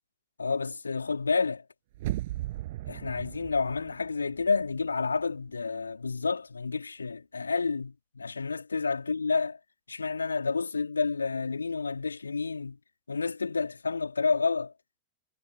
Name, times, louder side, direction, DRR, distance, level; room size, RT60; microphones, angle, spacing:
voice 1, 0.4-1.6 2.9-9.6 9.9-12.8 13.1-14.7, left 4 dB, 75° left, 4.8 m, -30 dB
sound 1, 1.9-4.9 5.2-5.3, right 16 dB, 55° right, 7.9 m, -37 dB
figure-of-eight pair, 90°, 0 cm